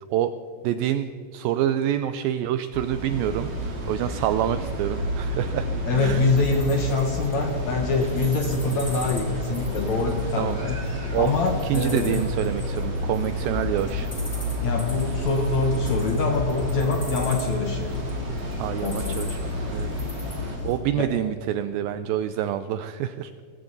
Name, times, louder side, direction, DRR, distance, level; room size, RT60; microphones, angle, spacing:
voice 1, 0.6-5.7 6.0-6.3 10.4-10.6 11.1-11.3 11.6-14.1 18.6-19.9 20.6-23.3, right 11 dB, 85° right, 11 dB, 2.1 m, -27 dB
sound 1, 2.7-20.6, left 1 dB, 30° right, 2.5 m, -30 dB
voice 2, 5.9-12.2 14.6-17.9 18.8-19.3 20.2-20.5 21.0-21.1, left 3 dB, 70° left, 3 dB, 1.8 m, -25 dB
sound 2, 5.9-20.8, left 1 dB, 5° left, 1.8 m, -39 dB
19.5 x 16.0 x 4.0 m, 2.4 s
omnidirectional pair, 4.6 m